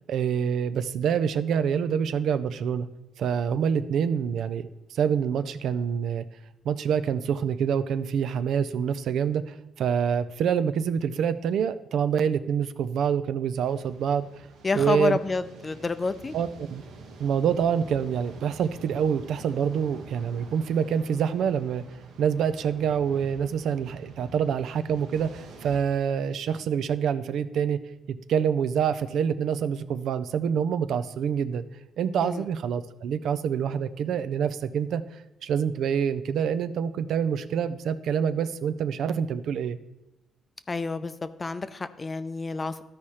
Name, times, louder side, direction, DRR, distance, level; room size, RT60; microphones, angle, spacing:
voice 1, 0.1-2.9 3.2-6.2 6.6-14.3 14.7-15.2 16.3-16.8 17.2-21.8 22.2-27.8 28.1-31.6 32.0-39.8, right 7 dB, 75° right, 12 dB, 0.4 m, -26 dB
sound 1, 13.6-25.8, right 3 dB, 90° right, 1.1 m, -47 dB
voice 2, 14.6-16.3 32.2-32.5 40.7-42.8, left 4 dB, 30° left, 12 dB, 0.5 m, -29 dB
13.0 x 4.9 x 4.2 m, 0.97 s
cardioid pair, 90°, 0 cm